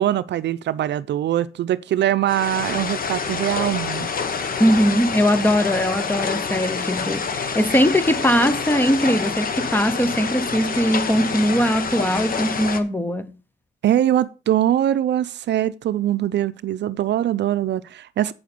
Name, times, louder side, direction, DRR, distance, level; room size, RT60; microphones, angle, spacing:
voice 1, 0.0-4.1 13.8-18.3, right 11 dB, 65° right, 0.6 m, -22 dB
sound 1, 2.3-12.8, left 5 dB, 45° left, 1.2 m, -27 dB
voice 2, 4.6-13.4, equal, 10° left, 0.8 m, -20 dB
8.6 x 6.5 x 5.2 m
cardioid pair, 90°, 20 cm